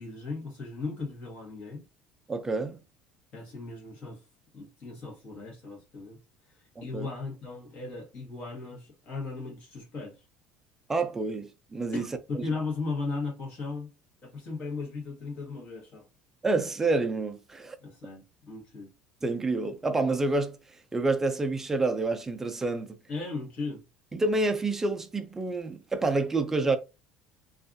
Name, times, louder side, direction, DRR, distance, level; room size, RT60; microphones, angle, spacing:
voice 1, 0.0-1.8 3.3-4.2 4.5-6.2 6.8-10.3 11.9-13.9 14.2-16.0 17.8-18.9 23.1-23.8, left 3 dB, 45° left, 1.2 m, -37 dB
voice 2, 2.3-2.8 6.8-7.1 10.9-12.0 12.3-12.4 16.4-17.8 19.2-20.6 20.9-23.0 24.1-26.8, right 3 dB, 15° right, 0.4 m, -28 dB
2.6 x 2.4 x 2.5 m
cardioid pair, 145°, 3 cm